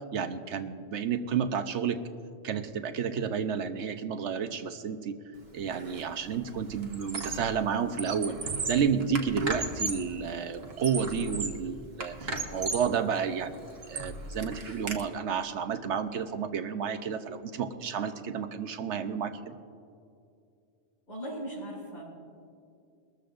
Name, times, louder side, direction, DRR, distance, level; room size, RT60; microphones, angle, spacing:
voice 1, 0.1-2.0 2.4-5.2 5.5-8.4 8.7-13.5 13.9-19.5, right 7 dB, 75° right, 8 dB, 1.1 m, -31 dB
Squeak, 5.7-6.0 6.3-7.6 7.9-10.1 10.6-11.6 12.0-12.9 13.4-15.0, right 3 dB, 60° right, 1.3 m, -35 dB
voice 2, 21.1-22.0, right 1 dB, 85° left, -10 dB, 4.4 m, -38 dB
23.0 x 13.5 x 2.6 m, 2.4 s
omnidirectional pair, 1.2 m